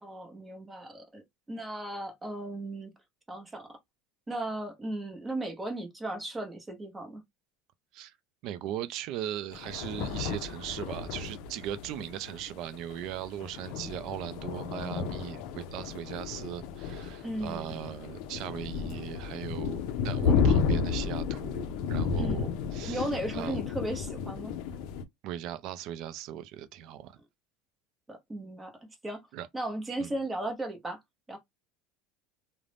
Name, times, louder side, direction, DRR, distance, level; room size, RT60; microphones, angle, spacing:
voice 1, 0.0-1.2 1.5-2.9 3.3-3.7 4.3-7.2 17.2-17.7 22.2-22.4 22.9-24.5 28.1-28.7 29.0-29.2 29.5-31.0 31.3-31.4, right 1 dB, 15° right, 0.7 m, -36 dB
voice 2, 8.4-23.1 23.3-23.6 25.2-27.1 29.3-29.5 30.0-30.1, right 11 dB, 55° right, 0.3 m, -38 dB
sound 1, 9.5-25.0, left 6 dB, 65° left, 0.4 m, -32 dB
2.5 x 2.0 x 3.2 m
supercardioid pair, 135°, 0 cm